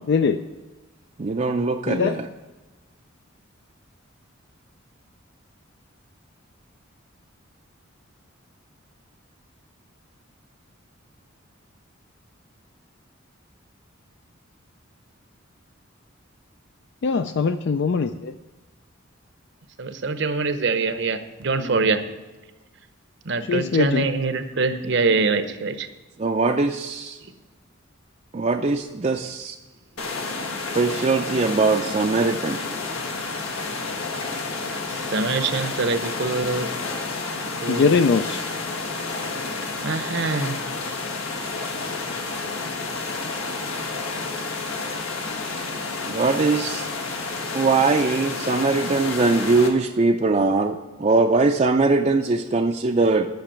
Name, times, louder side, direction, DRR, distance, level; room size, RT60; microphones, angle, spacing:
voice 1, 0.1-0.4 1.9-2.2 17.0-18.3 23.5-24.1 37.7-38.4, left 5 dB, 55° left, 9 dB, 0.4 m, -21 dB
voice 2, 1.2-2.3 21.6-21.8 26.2-27.2 28.3-29.6 30.7-32.6 46.0-46.9 47.5-53.3, right 3 dB, 35° right, 4 dB, 0.4 m, -21 dB
voice 3, 19.8-22.0 23.3-25.9 34.9-36.7 37.6-37.9 39.8-40.6, right 3 dB, 60° right, 10 dB, 0.8 m, -24 dB
sound 1, 30.0-49.7, left 3 dB, 90° left, 1.6 m, -30 dB
10.5 x 5.9 x 8.5 m, 1.2 s
head